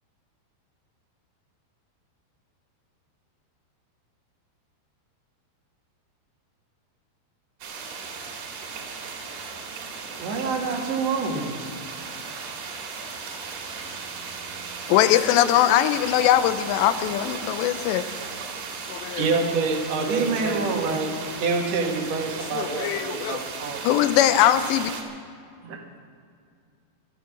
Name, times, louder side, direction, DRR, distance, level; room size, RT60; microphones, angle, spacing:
sound 1, 7.6-25.0, right 5 dB, 70° right, 3.9 m, -36 dB
voice 1, 10.2-11.7 20.0-21.0, right 4 dB, 90° right, 0 dB, 4.5 m, -27 dB
voice 2, 14.9-18.1 18.9-19.4 22.5-23.4 23.8-24.9, left 12 dB, 90° left, 11 dB, 2.9 m, -21 dB
voice 3, 19.1-23.8 25.6-25.8, right 4 dB, 50° right, 2 dB, 2.3 m, -27 dB
18.5 x 12.5 x 6.0 m, 2.3 s
omnidirectional pair, 4.9 m